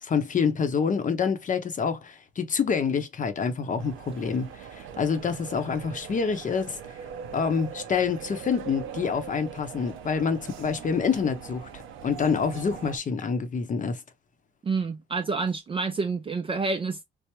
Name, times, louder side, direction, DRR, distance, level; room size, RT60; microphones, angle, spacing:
voice 1, 0.0-6.8 7.3-11.7 12.0-14.0, left 6 dB, 40° left, 0.7 m, -27 dB
sound 1, 3.8-13.0, right 8 dB, 85° right, 0.6 m, -41 dB
voice 2, 14.6-17.0, right 4 dB, 25° right, 0.4 m, -28 dB
3.3 x 2.0 x 2.9 m
cardioid pair, 90°, 20 cm